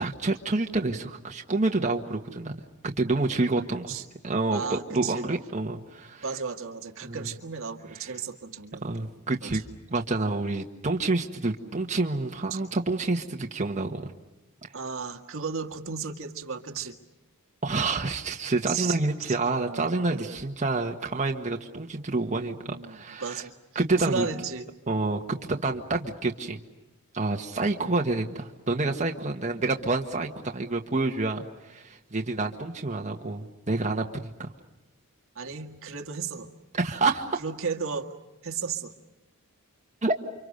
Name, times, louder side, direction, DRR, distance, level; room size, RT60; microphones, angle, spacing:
voice 1, 0.0-3.9 4.2-6.2 7.0-7.3 8.0-8.1 8.8-9.6 9.9-14.1 17.6-23.4 23.7-24.3 24.9-26.6 27.1-34.5 36.7-37.4 40.0-40.2, right 3 dB, 35° right, 2 dB, 1.5 m, -28 dB
voice 2, 3.7-4.0 4.5-5.2 6.2-9.0 9.4-9.5 12.5-12.6 14.7-17.0 18.7-19.0 19.3-20.4 22.7-23.5 24.0-24.6 35.3-36.5 37.4-38.1 38.4-38.9, right 5 dB, 65° right, 4 dB, 1.8 m, -34 dB
29.5 x 25.5 x 6.6 m, 1.0 s
head